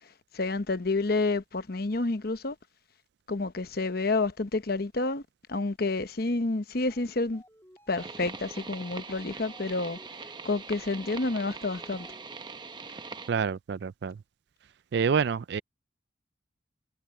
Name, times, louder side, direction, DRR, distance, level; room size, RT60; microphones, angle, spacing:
voice 1, 0.3-2.6 3.3-5.2 5.5-7.4 7.9-10.0 10.4-12.1, left 3 dB, 55° left, 1.0 m, -29 dB
sound 1, 6.8-12.5, equal, 15° left, 2.3 m, -56 dB
sound 2, 8.0-13.3, right 4 dB, 25° right, 0.8 m, -42 dB
voice 2, 13.3-14.1 14.9-15.6, right 6 dB, 60° right, 0.4 m, -27 dB
head